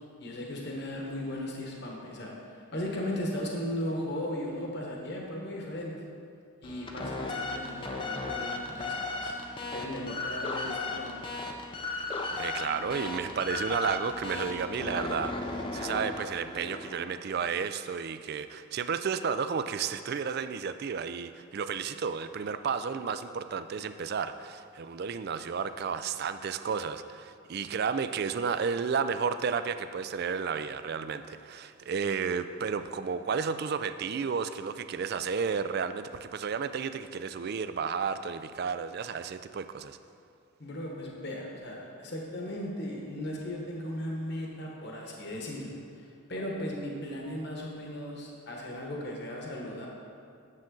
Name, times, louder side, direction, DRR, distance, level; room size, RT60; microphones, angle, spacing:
voice 1, 0.2-5.9 6.6-9.4 9.7-11.1 40.6-49.9, left 1 dB, 50° left, -1 dB, 1.2 m, -37 dB
sound 1, 6.6-17.2, left 3 dB, 20° left, 0.5 m, -36 dB
voice 2, 12.4-40.0, right 6 dB, 45° right, 11 dB, 0.3 m, -32 dB
9.7 x 7.4 x 3.8 m, 2.4 s
head